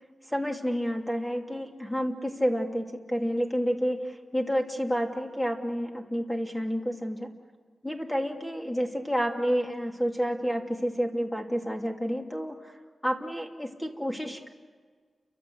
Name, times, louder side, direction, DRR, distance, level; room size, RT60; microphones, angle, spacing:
voice 1, 0.3-7.3 7.8-12.7 13.0-14.5, equal, 5° left, 2 dB, 2.8 m, -29 dB
30.0 x 25.0 x 7.9 m, 1.5 s
wide cardioid pair, 145°, 0 cm